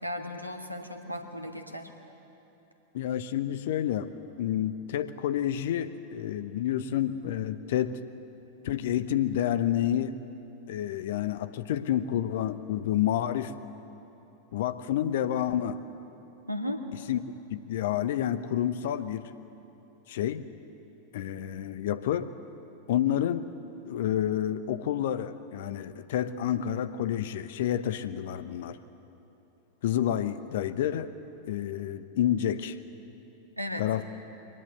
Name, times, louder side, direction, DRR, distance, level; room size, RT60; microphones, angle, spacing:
voice 1, 0.0-1.9 16.5-16.8 33.6-33.9, left 1 dB, 90° right, 4 dB, 1.8 m, -35 dB
voice 2, 2.9-4.1 4.4-8.0 8.6-10.1 10.7-13.5 14.5-15.8 17.1-17.2 17.5-19.3 20.1-20.4 21.1-22.3 22.9-23.5 23.9-28.8 29.8-31.1 31.5-32.8 33.8-34.0, left 11 dB, 55° left, 13 dB, 1.0 m, -29 dB
24.0 x 18.5 x 8.2 m, 2.9 s
figure-of-eight pair, 90°, 0 cm